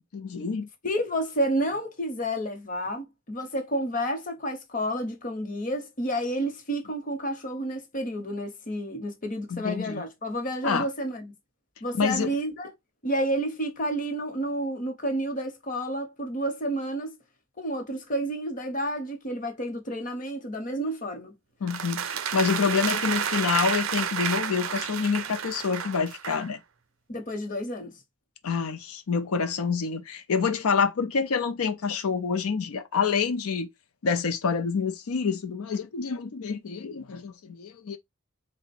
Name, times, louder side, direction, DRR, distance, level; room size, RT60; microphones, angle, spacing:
voice 1, 0.1-0.7 9.5-10.0 10.6-10.9 11.9-12.3 21.6-26.6 28.4-33.7 34.0-38.0, left 5 dB, 90° left, 0.5 m, -27 dB
voice 2, 0.8-11.3 11.8-12.7 13.0-17.2 17.6-21.3 27.1-27.9, right 1 dB, 40° left, 0.9 m, -30 dB
sound 1, 21.7-26.5, right 8 dB, 70° right, 0.5 m, -30 dB
3.7 x 2.1 x 4.2 m
head